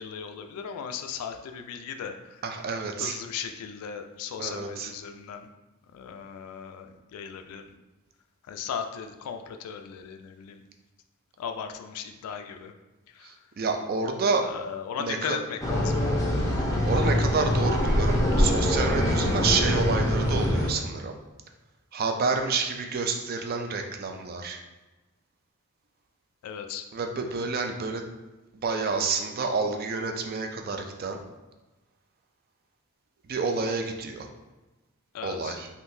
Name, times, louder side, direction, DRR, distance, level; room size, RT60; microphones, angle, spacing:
voice 1, 0.0-2.4 3.0-5.5 5.9-7.8 8.4-10.6 11.4-12.7 13.1-13.4 14.4-16.7 26.4-26.9 35.1-35.6, left 7 dB, 80° left, 11 dB, 0.3 m, -37 dB
voice 2, 2.4-3.2 4.4-4.9 13.2-14.5 15.0-15.4 16.8-21.2 21.9-24.6 26.9-28.0 28.6-31.2 33.2-34.3 35.2-35.7, right 4 dB, 45° right, 4 dB, 0.3 m, -29 dB
sound 1, 15.6-20.7, left 1 dB, 15° left, 0.5 m, -24 dB
3.6 x 2.6 x 2.6 m, 1.1 s
head